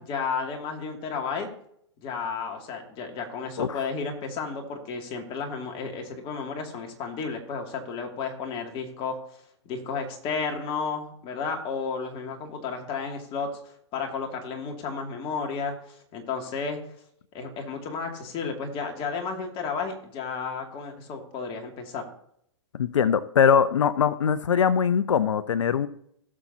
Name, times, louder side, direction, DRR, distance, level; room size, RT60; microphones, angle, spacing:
voice 1, 0.0-1.5 2.0-9.2 9.7-15.7 16.1-16.8 17.3-22.0, left 5 dB, 35° left, 2 dB, 2.5 m, -32 dB
voice 2, 22.7-25.9, left 7 dB, 85° left, 14 dB, 0.6 m, -22 dB
17.0 x 7.3 x 2.8 m, 0.69 s
hypercardioid pair, 125°, 15 cm